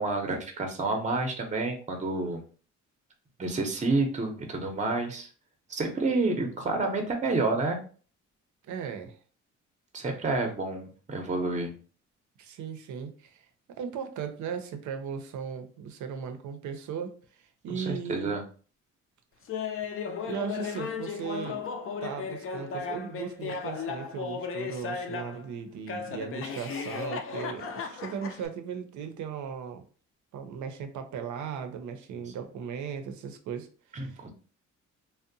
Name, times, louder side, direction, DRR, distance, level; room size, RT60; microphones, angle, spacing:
voice 1, 0.0-2.4 3.4-5.3 5.7-7.8 9.9-11.7 17.7-18.4 33.9-34.3, right 3 dB, 25° right, 4 dB, 0.6 m, -29 dB
voice 2, 8.7-9.2 10.4-10.6 12.4-18.4 20.2-21.6 22.0-29.8 30.3-34.2, right 7 dB, 75° right, 8 dB, 0.5 m, -37 dB
Laughter, 19.5-25.4 25.9-28.5, left 5 dB, 45° left, 0.4 m, -35 dB
2.6 x 2.0 x 2.6 m, 0.40 s
cardioid pair, 90°, 30 cm